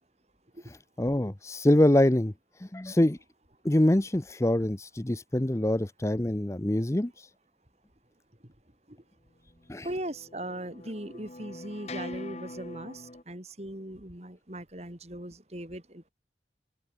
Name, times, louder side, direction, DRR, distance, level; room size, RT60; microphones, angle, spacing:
voice 1, 1.0-2.3 2.6-3.2 3.6-7.1 9.7-9.9, left 1 dB, 15° left, 0.6 m, -24 dB
sound 1, 9.6-13.2, left 2 dB, 35° left, 1.7 m, -43 dB
voice 2, 9.8-16.1, right 1 dB, 35° right, 3.1 m, -39 dB
open air
head